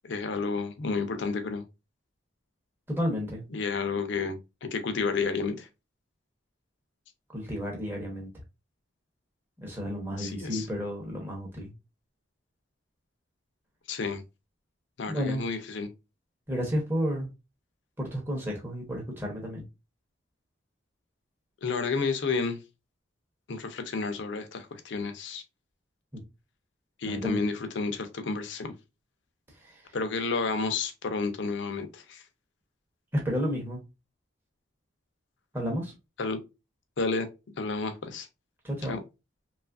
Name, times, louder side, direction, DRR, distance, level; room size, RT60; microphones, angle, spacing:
voice 1, 0.0-1.6 3.5-5.7 10.2-10.7 13.9-14.2 15.0-15.9 21.6-22.6 23.5-25.4 27.0-28.7 29.9-32.2 36.2-36.4 37.0-37.3 37.6-38.3 38.9-39.0, left 4 dB, 65° left, 0.5 m, -31 dB
voice 2, 2.9-3.4 7.3-8.3 9.6-11.7 15.1-15.4 16.5-17.3 18.0-19.7 27.0-27.4 29.6-29.8 33.1-33.8 35.5-35.9 38.6-39.0, equal, 10° right, 0.7 m, -31 dB
2.9 x 2.4 x 2.3 m
head